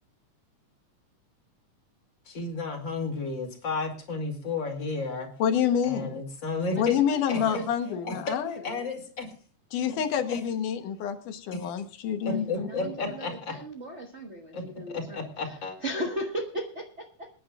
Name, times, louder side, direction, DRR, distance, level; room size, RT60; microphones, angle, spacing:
voice 1, 2.3-5.3 5.8-7.0 7.3-7.6 8.0-8.4 8.6-9.3 9.9-10.0 10.3-10.4 11.5-11.6 12.2-13.5 14.5-15.8, left 3 dB, 40° left, 2 dB, 2.9 m, -32 dB
voice 2, 5.4-6.2 6.8-8.6 9.7-12.7, left 8 dB, 80° left, 7 dB, 2.6 m, -28 dB
voice 3, 6.7-8.8 12.2-17.3, equal, 65° right, 2 dB, 0.6 m, -38 dB
28.0 x 10.0 x 2.4 m, 0.40 s
omnidirectional pair, 3.6 m